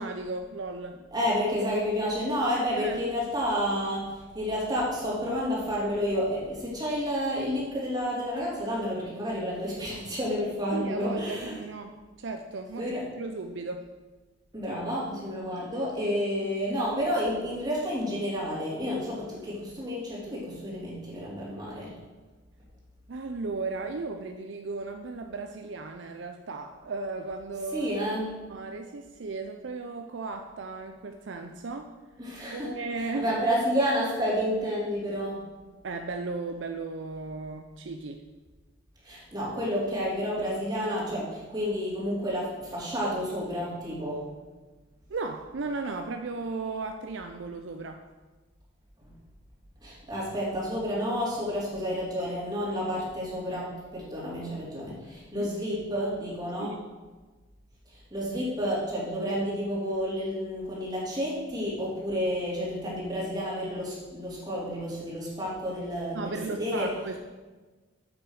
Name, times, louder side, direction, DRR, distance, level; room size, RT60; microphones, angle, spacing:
voice 1, 0.0-1.0 2.8-3.1 10.7-13.9 23.1-27.9 28.5-32.0 32.5-33.3 35.8-38.3 45.1-48.0 55.3-55.5 56.6-56.8 66.1-67.2, right 3 dB, 65° right, 6 dB, 0.5 m, -36 dB
voice 2, 1.1-11.6 12.8-13.0 14.5-21.9 27.7-28.3 32.2-32.7 33.1-35.4 39.0-44.2 49.0-49.1 49.8-56.7 58.1-66.9, equal, 20° right, -7 dB, 3.4 m, -30 dB
7.9 x 6.1 x 6.4 m, 1.3 s
head